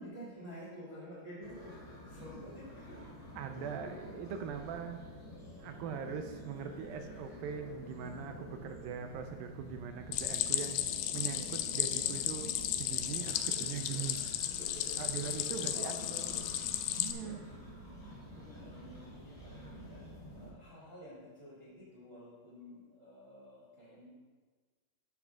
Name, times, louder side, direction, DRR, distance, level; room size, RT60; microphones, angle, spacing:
voice 1, 0.0-1.8 2.1-3.2 3.5-4.7 7.1-7.2 8.6-8.9 11.8-12.1 13.3-14.1 14.4-16.5 17.2-17.4 18.3-20.0 20.3-24.1, equal, 20° right, -8 dB, 2.2 m, -50 dB
sound 1, 1.4-20.5, left 1 dB, 10° left, 2.4 m, -49 dB
voice 2, 3.4-5.0 5.6-10.8 11.1-12.5 12.8-14.2 15.0-15.9 17.0-17.4, right 7 dB, 80° right, 6 dB, 2.3 m, -41 dB
Stream, 10.1-17.1, left 11 dB, 85° left, 2.4 m, -34 dB
13.0 x 10.0 x 2.4 m, 1.4 s
omnidirectional pair, 4.4 m